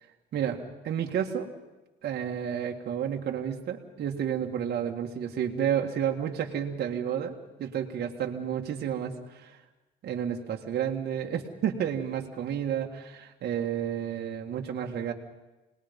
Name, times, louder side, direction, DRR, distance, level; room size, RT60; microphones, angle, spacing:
voice 1, 0.3-1.5 2.0-9.6 10.0-15.1, right 9 dB, 55° right, 1 dB, 2.1 m, -31 dB
26.5 x 20.0 x 5.5 m, 1.1 s
cardioid pair, 110°, 19 cm